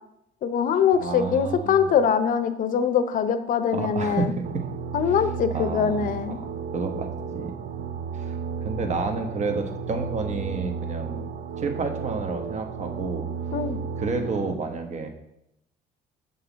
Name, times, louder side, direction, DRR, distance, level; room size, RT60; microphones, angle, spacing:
voice 1, 0.4-4.3 4.9-6.4 13.5-13.8, left 7 dB, 50° left, 11 dB, 0.6 m, -23 dB
voice 2, 1.0-1.9 3.7-4.6 5.5-6.5 6.7-7.6 8.1-11.3 11.6-13.3 14.0-15.1, right 4 dB, 45° right, 5 dB, 1.1 m, -30 dB
sound 1, 4.4-14.5, right 6 dB, 65° right, 0.5 m, -33 dB
7.1 x 5.5 x 3.9 m, 0.83 s
cardioid pair, 110°, 17 cm